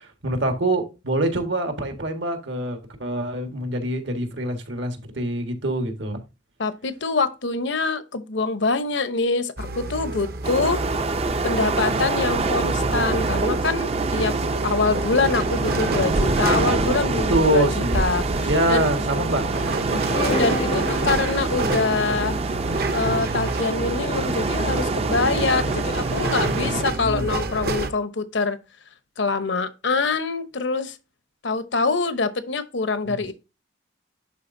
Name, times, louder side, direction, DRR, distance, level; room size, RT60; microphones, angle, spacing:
voice 1, 0.0-6.2 17.1-18.0 18.4-20.2 26.6-27.5 33.1-33.3, right 1 dB, 70° right, 1.5 m, -25 dB
voice 2, 6.6-10.8 11.4-14.4 14.6-18.9 19.9-22.4 22.9-28.6 29.2-31.0 31.4-33.3, left 4 dB, 70° left, 0.9 m, -25 dB
sound 1, 9.6-27.9, right 2 dB, 55° right, 0.8 m, -29 dB
sound 2, 10.4-26.8, right 3 dB, 30° right, 0.5 m, -26 dB
sound 3, 20.2-24.3, left 3 dB, 30° left, 0.3 m, -33 dB
11.0 x 4.2 x 2.6 m
head